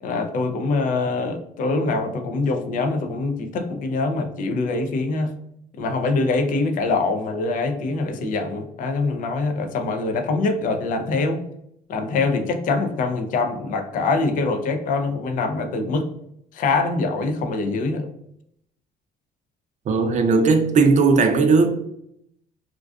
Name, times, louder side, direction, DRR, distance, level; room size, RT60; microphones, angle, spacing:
voice 1, 0.0-5.3 5.7-11.4 11.9-16.1 16.5-18.1, left 3 dB, 50° left, 0.4 m, -24 dB
voice 2, 19.9-21.7, right 4 dB, 45° right, 0.4 m, -17 dB
2.4 x 2.2 x 2.3 m
cardioid pair, 110°, 17 cm